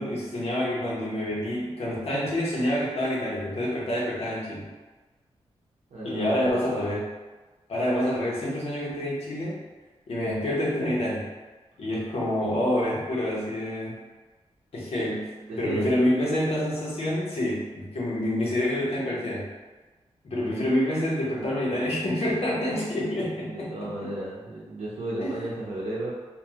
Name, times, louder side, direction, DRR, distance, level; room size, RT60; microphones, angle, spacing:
voice 1, 0.0-4.7 6.0-7.1 7.7-9.6 10.1-11.3 11.8-14.0 14.7-15.3 15.6-19.5 20.2-24.1 25.2-25.4, left 1 dB, 65° left, -5 dB, 0.8 m, -27 dB
voice 2, 5.9-6.6 14.9-15.2 15.5-16.0 23.4-26.1, right 1 dB, 85° right, -7 dB, 0.6 m, -34 dB
2.6 x 2.2 x 2.7 m, 1.3 s
wide cardioid pair, 110°, 11 cm